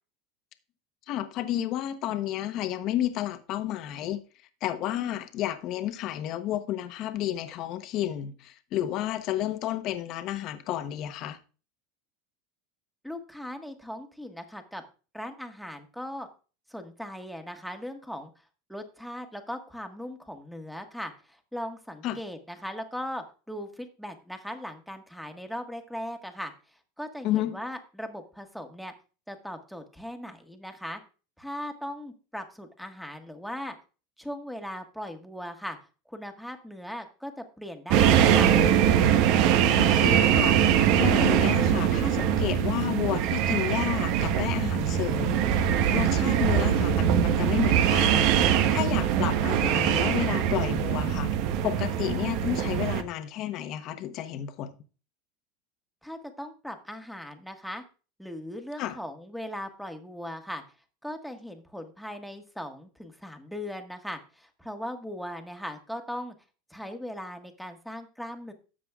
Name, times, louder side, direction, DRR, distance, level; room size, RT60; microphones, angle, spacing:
voice 1, 1.1-4.2 4.6-11.4 22.0-22.2 27.2-27.6 39.8-40.6 41.0-45.6 45.9-51.3 51.6-54.7 58.8-59.0, left 12 dB, 50° left, 1.0 m, -31 dB
voice 2, 13.0-14.8 15.1-16.3 16.7-18.3 18.7-26.5 27.0-28.9 29.3-31.0 31.4-33.7 34.2-35.8 36.1-38.6 56.0-57.8 58.2-60.6 61.0-66.3 66.7-68.5, equal, ahead, 1.5 m, -38 dB
sound 1, 37.9-53.0, right 9 dB, 60° right, 0.9 m, -23 dB
12.5 x 7.5 x 2.4 m
supercardioid pair, 115°, 0 cm